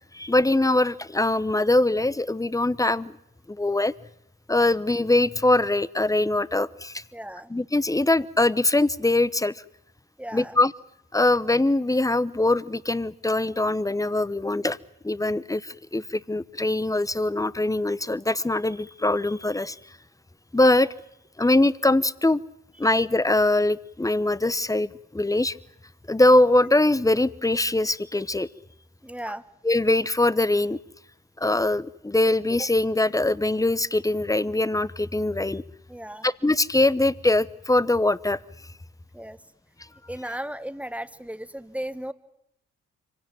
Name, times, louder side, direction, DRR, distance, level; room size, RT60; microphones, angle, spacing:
voice 1, 0.1-3.1 3.5-3.9 4.5-7.0 7.5-9.6 10.3-10.7 11.1-14.8 15.0-19.8 20.5-20.9 21.4-22.4 22.8-25.6 26.1-28.5 29.6-30.8 31.4-35.6 36.2-38.4, left 2 dB, 10° left, 18 dB, 0.9 m, -22 dB
voice 2, 7.1-7.5 10.2-10.6 22.8-22.9 29.0-29.4 35.9-36.3 39.1-39.4 40.1-42.1, right 1 dB, 5° right, 12 dB, 1.4 m, -35 dB
25.0 x 17.0 x 9.1 m, 0.79 s
supercardioid pair, 50°, 31 cm